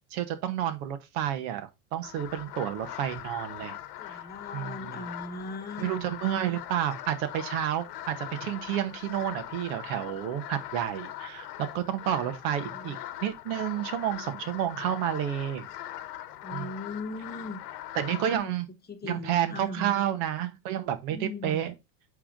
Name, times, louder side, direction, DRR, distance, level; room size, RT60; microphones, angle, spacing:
voice 1, 0.1-3.8 4.1-4.2 4.5-5.0 5.8-15.7 16.5-16.7 18.0-18.7 19.0-21.7, right 11 dB, 60° right, 1.6 m, -30 dB
sound 1, 2.0-18.4, left 13 dB, 80° left, 1.1 m, -41 dB
voice 2, 4.0-6.0 12.1-12.3 12.6-13.0 16.4-17.6 18.2-18.5 18.9-20.0 21.1-21.6, left 2 dB, 20° left, 1.2 m, -39 dB
8.4 x 3.7 x 3.6 m
hypercardioid pair, 110°, 47 cm